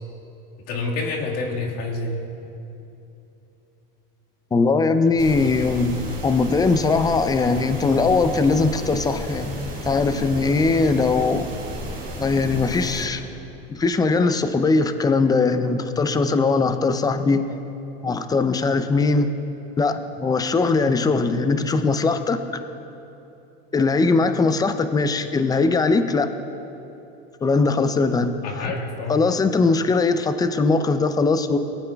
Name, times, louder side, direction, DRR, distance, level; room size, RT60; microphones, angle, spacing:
voice 1, 0.7-2.2 28.4-29.2, left 3 dB, 55° left, -2 dB, 1.9 m, -27 dB
voice 2, 4.5-11.5 12.2-13.2 13.7-17.4 18.0-19.3 19.8-22.4 23.7-26.3 27.4-28.7 29.1-31.6, left 3 dB, 15° left, 9 dB, 0.5 m, -20 dB
sound 1, 5.2-13.1, right 1 dB, 30° right, 2.2 m, -33 dB
20.0 x 8.9 x 2.3 m, 2.9 s
supercardioid pair, 115°, 30 cm